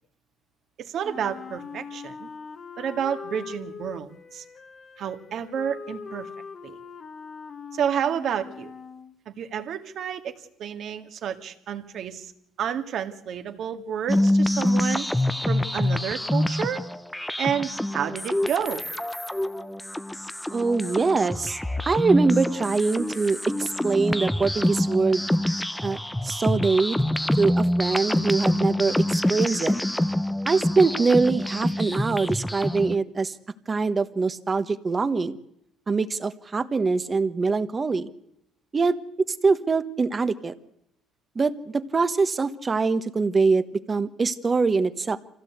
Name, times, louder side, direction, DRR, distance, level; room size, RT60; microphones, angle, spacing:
voice 1, 0.8-2.3 2.8-4.4 5.0-6.3 6.6-6.8 7.7-8.7 9.3-12.3 12.6-15.1 15.5-16.8 17.4-18.8, right 8 dB, 60° right, 7 dB, 2.0 m, -30 dB
Wind instrument woodwind instrument, 1.0-9.1, left 5 dB, 45° left, 1.5 m, -41 dB
sound 1, 14.1-33.0, left 1 dB, 5° left, 0.8 m, -26 dB
voice 2, 20.5-21.6 21.9-25.2 25.8-27.1 27.4-29.8 30.4-33.4 33.7-35.4 35.9-38.1 38.7-38.9 39.4-40.5 41.3-45.2, right 4 dB, 30° right, 12 dB, 1.3 m, -23 dB
25.5 x 16.0 x 8.1 m, 0.78 s
cardioid pair, 100°, 0 cm